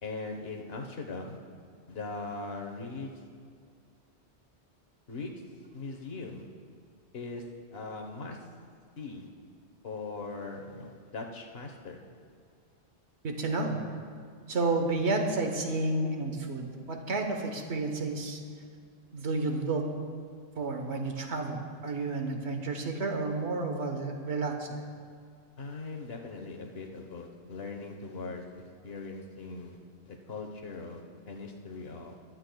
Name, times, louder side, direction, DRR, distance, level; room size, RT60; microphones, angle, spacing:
voice 1, 0.0-1.4 1.9-3.1 5.1-5.3 5.7-6.5 7.1-7.5 7.7-8.4 9.0-9.3 9.8-12.0 25.6-28.4 28.8-29.8 30.0-32.2, left 3 dB, 65° left, 2 dB, 1.4 m, -40 dB
voice 2, 13.2-13.8 14.5-18.4 19.1-19.8 20.6-24.8, right 3 dB, 80° right, 4 dB, 1.4 m, -31 dB
21.0 x 12.5 x 2.3 m, 2.2 s
omnidirectional pair, 1.1 m